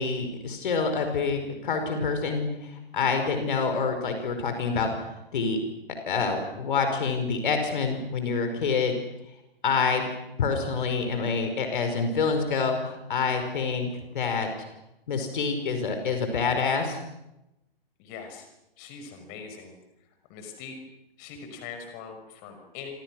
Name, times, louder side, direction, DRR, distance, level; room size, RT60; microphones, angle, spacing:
voice 1, 0.0-4.9 5.3-5.6 6.1-9.0 9.6-10.0 10.4-13.9 14.1-14.5 15.1-17.0, left 5 dB, 55° left, 6 dB, 5.3 m, -27 dB
voice 2, 18.0-18.5 18.8-19.8 20.3-20.8 21.2-22.9, left 6 dB, 30° left, 6 dB, 5.8 m, -42 dB
27.5 x 27.0 x 6.4 m, 0.91 s
figure-of-eight pair, 120°, 30 cm